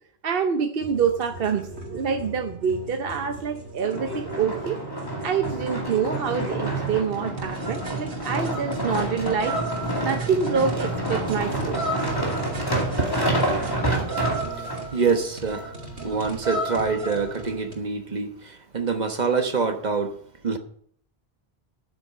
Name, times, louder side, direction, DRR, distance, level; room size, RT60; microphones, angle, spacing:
voice 1, 0.2-4.8 5.2-9.6 10.0-11.8, right 6 dB, 65° right, 1.0 m, -26 dB
sound 1, 0.8-17.7, right 2 dB, 90° right, 2.2 m, -36 dB
sound 2, 3.8-14.8 15.4-15.5, right 1 dB, 20° left, 2.4 m, -28 dB
voice 2, 14.5-15.7 16.0-20.1 20.4-20.6, right 5 dB, 45° right, 1.3 m, -26 dB
9.1 x 8.8 x 6.8 m
omnidirectional pair, 1.1 m